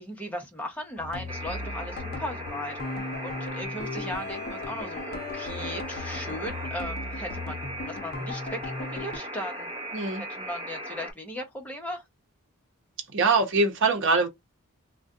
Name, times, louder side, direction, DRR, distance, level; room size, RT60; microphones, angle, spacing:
voice 1, 0.0-2.8 3.2-7.6 7.8-9.7 10.2-12.0, equal, 5° left, 0.8 m, -37 dB
sound 1, 1.0-9.2, left 3 dB, 45° left, 0.6 m, -37 dB
Alarm, 1.3-11.1, equal, 25° right, 0.9 m, -38 dB
voice 2, 9.9-10.2 13.1-14.3, right 3 dB, 55° right, 0.9 m, -23 dB
2.4 x 2.2 x 3.6 m
head